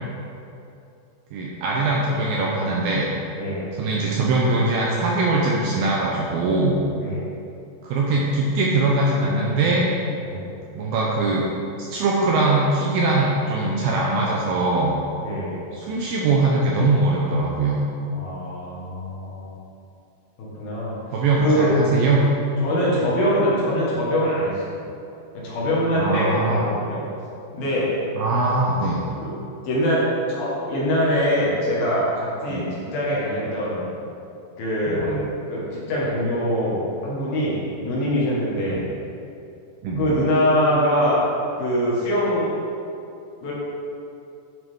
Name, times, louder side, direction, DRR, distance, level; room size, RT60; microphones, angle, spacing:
voice 1, 1.3-3.0 3.8-6.8 7.8-9.9 10.7-11.5 11.8-15.0 15.7-17.8 21.1-22.2 26.0-26.6 28.2-29.0 32.5-32.7 34.9-35.0 38.7-38.8 39.8-40.0, right 2 dB, 75° right, -3 dB, 2.2 m, -21 dB
voice 2, 15.2-15.6 18.1-19.5 20.4-21.0 21.3-21.8 22.6-24.8 25.3-27.0 27.5-28.0 29.1-29.3 29.6-33.9 34.6-38.8 40.0-41.2 41.6-42.5 43.4-43.5, equal, 65° left, -7 dB, 3.3 m, -23 dB
10.5 x 6.3 x 3.7 m, 2.7 s
omnidirectional pair, 4.9 m